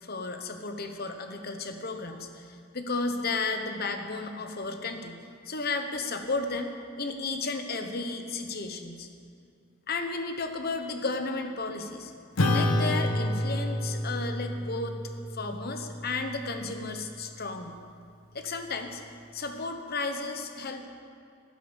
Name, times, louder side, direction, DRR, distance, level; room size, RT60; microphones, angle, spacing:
voice 1, 0.0-5.2 5.4-9.1 9.9-12.1 12.5-15.0 15.3-17.8 18.3-19.0 19.3-20.9, left 3 dB, 45° left, 6 dB, 1.1 m, -33 dB
Acoustic guitar / Strum, 12.4-17.2, left 1 dB, 90° left, 1.2 m, -29 dB
12.5 x 10.0 x 7.1 m, 2.4 s
head